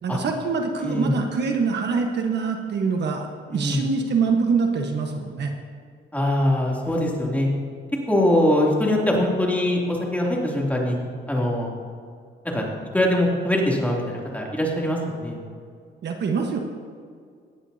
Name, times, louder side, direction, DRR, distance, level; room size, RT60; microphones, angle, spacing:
voice 1, 0.0-5.5 16.0-16.6, right 5 dB, 60° right, 3 dB, 1.3 m, -24 dB
voice 2, 0.8-1.1 3.5-3.8 6.1-7.5 8.1-11.0 11.3-11.7 12.5-12.6 12.9-15.4, left 1 dB, 5° left, -3 dB, 2.9 m, -22 dB
17.5 x 11.0 x 2.8 m, 2.2 s
cardioid pair, 90°, 20 cm